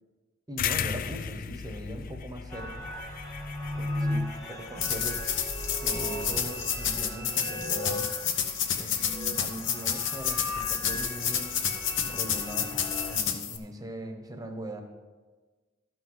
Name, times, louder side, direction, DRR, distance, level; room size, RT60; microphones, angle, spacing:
voice 1, 0.5-2.9 3.7-5.2 5.8-8.3 8.8-9.0 9.4-11.5 12.0-12.7 13.1-14.8, right 1 dB, 20° right, 5 dB, 1.0 m, -40 dB
sound 1, 0.6-5.5, left 8 dB, 40° left, 0.3 m, -36 dB
sound 2, 2.5-13.2, left 1 dB, 15° left, 1.6 m, -37 dB
sound 3, 4.8-13.6, left 8 dB, 60° left, 0.9 m, -30 dB
12.5 x 6.0 x 5.6 m, 1.3 s
head